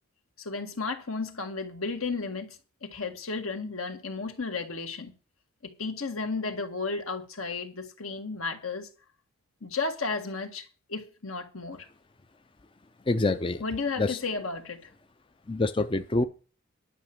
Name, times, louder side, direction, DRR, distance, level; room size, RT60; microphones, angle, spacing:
voice 1, 0.4-5.1 5.6-8.9 9.6-11.9 13.6-14.9, left 4 dB, 75° left, 2.1 m, -33 dB
voice 2, 13.0-13.6 14.0-14.2 15.5-16.2, left 2 dB, 25° left, 0.4 m, -26 dB
11.0 x 5.8 x 8.6 m
head